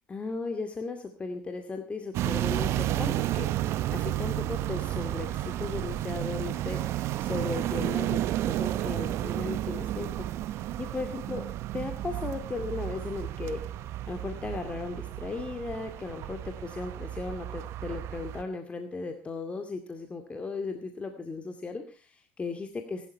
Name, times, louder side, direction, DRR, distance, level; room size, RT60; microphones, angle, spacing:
voice 1, 0.1-11.5 11.7-23.1, left 3 dB, 25° left, 6 dB, 2.3 m, -36 dB
sound 1, 2.1-18.4, right 13 dB, 60° right, 0.9 m, -32 dB
19.0 x 12.0 x 5.5 m, 0.36 s
supercardioid pair, 95°, 5 cm